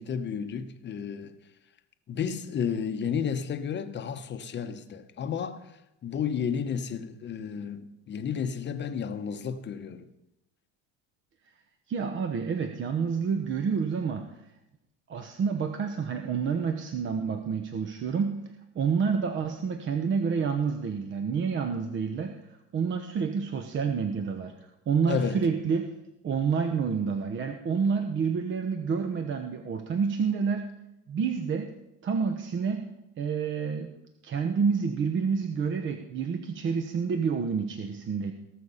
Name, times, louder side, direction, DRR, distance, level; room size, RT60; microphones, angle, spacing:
voice 1, 0.0-1.4 2.1-10.1 25.1-25.4, left 7 dB, 35° left, 0.9 m, -32 dB
voice 2, 11.9-14.3 15.1-18.4 18.7-25.9 26.2-30.7 31.1-31.7 32.0-32.9 33.2-33.9 34.2-38.3, right 6 dB, 35° right, 0.9 m, -28 dB
18.5 x 6.6 x 5.6 m
supercardioid pair, 120°, 34 cm